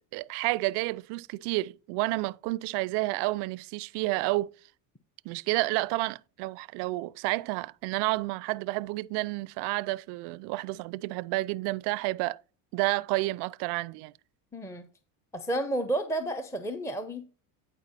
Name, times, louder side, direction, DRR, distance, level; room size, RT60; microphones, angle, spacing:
voice 1, 0.1-4.5 5.3-12.4 12.7-14.1, right 20 dB, 60° right, 0.5 m, -30 dB
voice 2, 14.5-14.9 15.3-17.3, right 1 dB, 5° left, 0.7 m, -31 dB
9.7 x 4.6 x 4.2 m
supercardioid pair, 100°, 46 cm